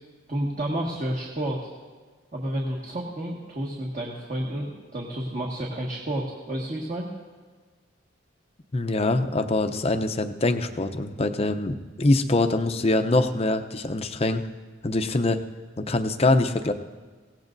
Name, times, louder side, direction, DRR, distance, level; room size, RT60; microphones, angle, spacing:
voice 1, 0.3-1.7 2.3-7.1, right 1 dB, 40° right, -3 dB, 1.7 m, -30 dB
voice 2, 8.7-14.4 14.8-15.4 15.8-16.7, left 2 dB, 30° left, 8 dB, 0.7 m, -24 dB
23.5 x 17.5 x 2.7 m, 1.4 s
head